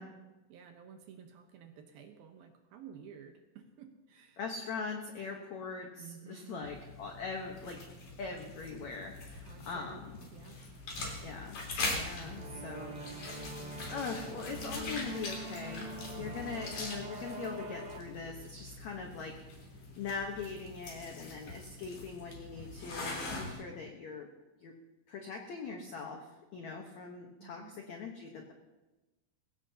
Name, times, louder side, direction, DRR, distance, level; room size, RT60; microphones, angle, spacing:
voice 1, 0.0-4.4 6.0-6.7 9.4-10.0 10.3-10.6 16.2-16.6 27.4-27.8, right 8 dB, 70° right, 5 dB, 2.6 m, -53 dB
voice 2, 4.4-7.8 8.2-10.2 11.2-11.6 11.9-13.0 13.9-15.9 16.2-19.4 20.0-24.3 24.6-24.7 25.1-28.5, left 4 dB, 85° left, 2 dB, 1.5 m, -41 dB
sound 1, 6.6-23.5, left 2 dB, 50° left, 4.8 m, -43 dB
sound 2, 12.2-18.0, right 1 dB, 45° right, 1.4 m, -44 dB
22.0 x 17.0 x 2.8 m, 1.1 s
omnidirectional pair, 5.0 m